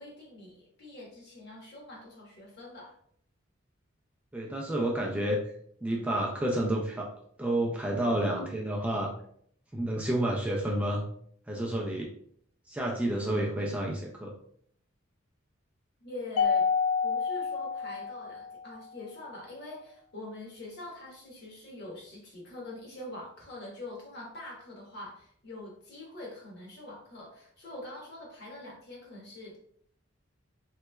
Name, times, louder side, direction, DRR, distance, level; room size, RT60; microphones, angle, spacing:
voice 1, 0.0-2.9 16.0-16.7 17.0-29.6, left 1 dB, 55° left, -2 dB, 1.1 m, -44 dB
voice 2, 4.3-5.5 5.8-7.1 7.4-9.1 9.7-11.1 11.5-12.1 12.7-14.3, right 1 dB, 5° right, -2 dB, 0.3 m, -30 dB
Mallet percussion, 16.4-18.8, left 5 dB, 90° left, 0.3 m, -28 dB
3.1 x 3.0 x 2.2 m, 0.65 s
head